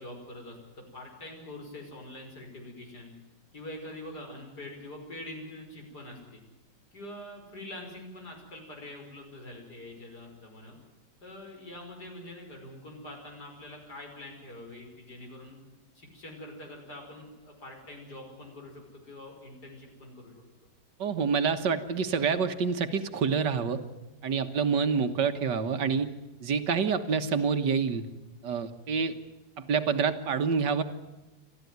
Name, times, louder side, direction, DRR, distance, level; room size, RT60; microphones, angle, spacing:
voice 1, 0.0-3.1 3.5-6.4 6.9-10.8 11.2-15.6 15.9-20.3 24.5-24.8, left 1 dB, 70° left, 2 dB, 6.1 m, -44 dB
voice 2, 21.0-23.8 24.2-26.1 26.4-28.0 28.4-29.2 29.6-30.8, right 6 dB, 85° right, 8 dB, 2.0 m, -27 dB
29.0 x 13.0 x 9.5 m, 1.1 s
omnidirectional pair, 1.8 m